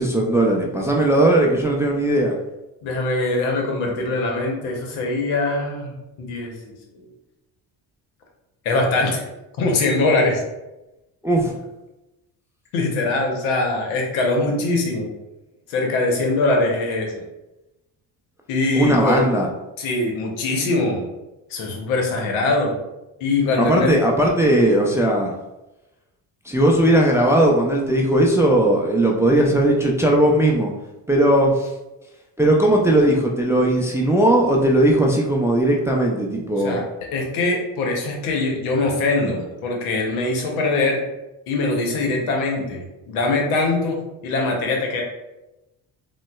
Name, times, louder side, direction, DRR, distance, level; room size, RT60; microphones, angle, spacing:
voice 1, 0.0-2.4 11.2-11.6 18.7-19.5 23.6-25.3 26.4-30.7 31.1-31.7 32.4-36.8, right 1 dB, 5° right, -1 dB, 0.3 m, -18 dB
voice 2, 2.8-5.9 6.2-6.5 8.6-9.3 9.6-10.4 12.7-15.1 15.7-17.1 18.5-19.2 19.8-21.1 21.5-22.7 23.2-24.0 36.6-36.8 37.1-41.0 41.5-44.0 44.2-45.0, left 2 dB, 80° left, 1 dB, 0.8 m, -22 dB
3.7 x 2.1 x 2.3 m, 0.97 s
supercardioid pair, 60°, 48 cm